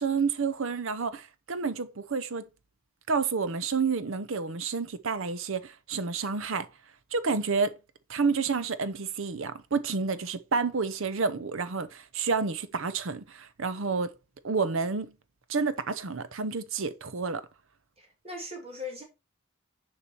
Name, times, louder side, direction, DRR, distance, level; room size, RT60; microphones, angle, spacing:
voice 1, 0.0-2.4 3.1-6.7 7.1-7.8 8.1-14.1 14.4-15.1 15.5-17.4, right 4 dB, 60° right, 0.7 m, -29 dB
voice 2, 18.0-19.0, left 2 dB, 25° right, 2.6 m, -39 dB
7.0 x 4.9 x 4.2 m
head